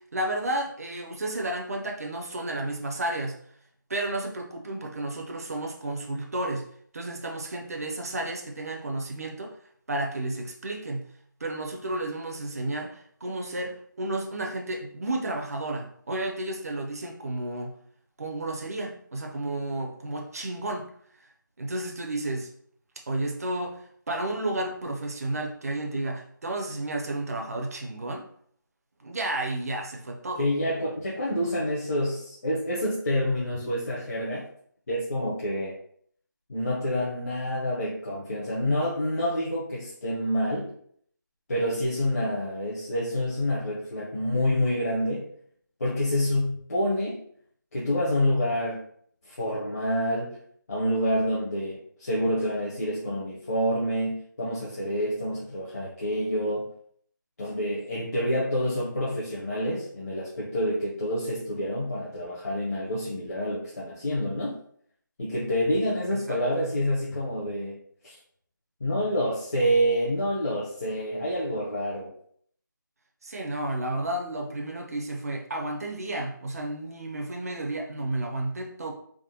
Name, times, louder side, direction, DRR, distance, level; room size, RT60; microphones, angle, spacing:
voice 1, 0.1-3.4 3.9-6.7 6.9-9.6 9.9-11.1 11.4-17.7 18.2-20.9 21.6-22.5 23.1-28.3 29.0-30.5 66.3-66.7 73.2-78.9, right 1 dB, 45° right, 1 dB, 0.5 m, -32 dB
voice 2, 30.4-34.4 34.9-35.8 36.5-40.7 41.5-45.3 45.8-47.2 47.7-48.8 49.2-50.4 50.7-56.7 57.4-64.6 65.2-67.8 68.0-68.2 68.8-72.1, equal, 45° left, -6 dB, 0.8 m, -27 dB
3.4 x 2.1 x 2.7 m, 0.62 s
figure-of-eight pair, 170°, 11 cm